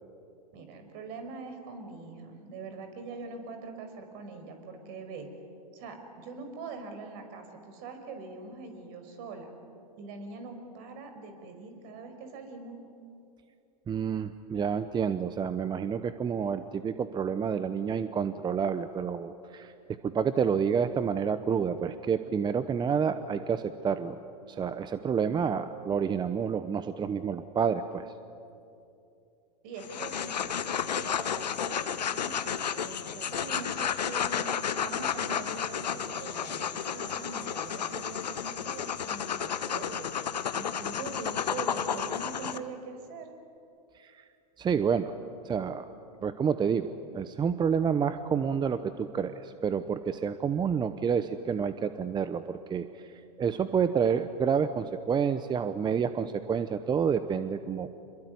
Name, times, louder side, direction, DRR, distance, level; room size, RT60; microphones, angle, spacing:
voice 1, 0.5-5.3 5.7-9.5 10.0-12.8 29.6-40.1 40.5-43.3, right 4 dB, 55° right, 6 dB, 5.5 m, -43 dB
voice 2, 13.9-24.2 24.5-28.1 43.9-44.2 44.6-45.1 45.4-45.9 46.2-46.9 47.1-58.0, right 7 dB, 20° right, 11 dB, 0.9 m, -29 dB
sound 1, 29.8-42.6, left 8 dB, 90° left, 1.2 m, -32 dB
27.0 x 22.5 x 9.7 m, 2.7 s
hypercardioid pair, 105°, 21 cm